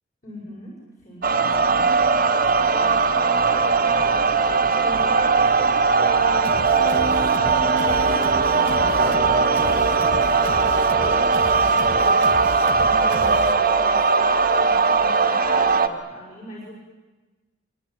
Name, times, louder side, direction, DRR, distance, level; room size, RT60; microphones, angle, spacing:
voice 1, 0.2-0.7 1.0-2.0 2.7-6.6 7.4-16.7, left 1 dB, 40° left, -3 dB, 6.7 m, -38 dB
sound 1, 1.2-15.9, right 4 dB, 45° right, 1.8 m, -19 dB
sound 2, 6.4-13.5, right 1 dB, 65° right, 2.0 m, -35 dB
25.0 x 24.5 x 9.5 m, 1.2 s
head